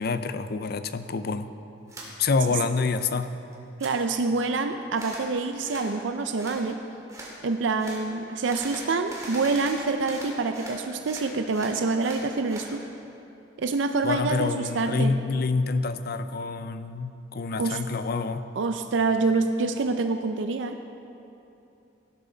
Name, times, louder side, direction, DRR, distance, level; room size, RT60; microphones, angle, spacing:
voice 1, 0.0-1.5 2.2-3.3 14.0-18.4, left 4 dB, 55° left, 11 dB, 0.5 m, -27 dB
sound 1, 1.9-2.1 2.5-3.3 3.5-3.9 4.9-5.3 5.6-5.9 6.4-6.6 7.1-7.3 7.8-8.0 8.4-10.8 11.0-12.7, right 1 dB, 20° right, 2.4 m, -41 dB
voice 2, 3.8-6.8 7.4-12.8 13.6-15.1 17.6-17.8 18.6-20.8, right 3 dB, 80° right, 7 dB, 0.5 m, -26 dB
17.0 x 12.0 x 3.9 m, 2.8 s
head